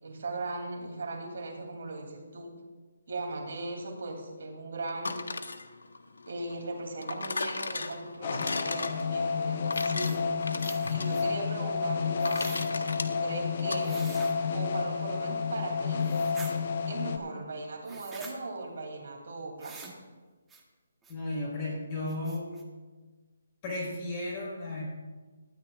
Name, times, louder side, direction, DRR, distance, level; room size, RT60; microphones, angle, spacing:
voice 1, 0.0-2.5 3.1-5.2 6.2-10.3 10.9-14.1 14.5-16.1 16.9-20.0, right 2 dB, 65° right, 1 dB, 2.9 m, -38 dB
sound 1, 4.9-13.8, left 3 dB, 90° left, 1.0 m, -37 dB
sound 2, 8.2-17.2, left 5 dB, 45° left, 1.0 m, -30 dB
sound 3, 9.7-10.2 10.6-11.3 12.2-12.7 13.8-14.3 16.0-16.5 17.8-18.4 19.6-20.0 20.5-20.6 21.0-21.1 21.6-21.7 22.1-22.6, right 4 dB, 10° right, 1.1 m, -47 dB
voice 2, 21.1-22.5 23.6-24.8, left 2 dB, 25° left, -4 dB, 4.6 m, -34 dB
19.0 x 12.5 x 2.4 m, 1.4 s
hypercardioid pair, 165°, 0 cm